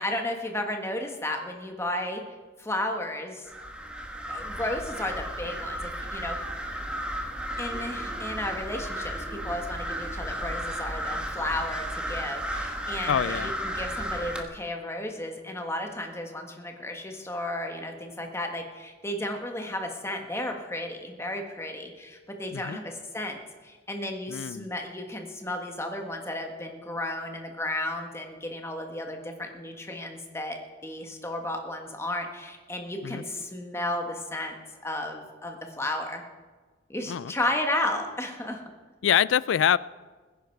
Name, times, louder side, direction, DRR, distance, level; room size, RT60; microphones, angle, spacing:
voice 1, 0.0-2.2 2.6-3.5 4.3-6.4 7.6-30.6 30.8-34.6 34.8-36.2 36.9-38.6, left 1 dB, 15° left, 4 dB, 1.5 m, -33 dB
sound 1, 3.5-14.4, equal, 5° right, 1.3 m, -34 dB
voice 2, 13.1-13.5 22.5-22.8 24.3-24.7 33.0-33.2 37.1-37.3 39.0-39.8, left 9 dB, 80° left, 20 dB, 0.4 m, -25 dB
20.5 x 10.5 x 4.7 m, 1.4 s
head